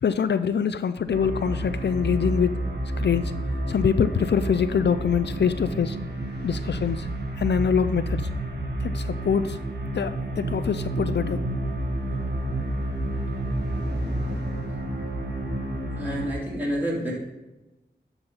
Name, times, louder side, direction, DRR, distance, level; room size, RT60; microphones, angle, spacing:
voice 1, 0.0-2.5 3.0-3.3 3.7-6.0 6.4-7.1 7.4-8.2 8.8-9.6 9.9-11.4, left 7 dB, 75° left, 12 dB, 0.4 m, -24 dB
sound 1, 1.1-16.3, right 1 dB, 70° right, 1.5 m, -30 dB
voice 2, 15.9-17.1, equal, 10° right, -6 dB, 3.3 m, -28 dB
11.5 x 4.1 x 5.5 m, 1.0 s
wide cardioid pair, 70°, 18 cm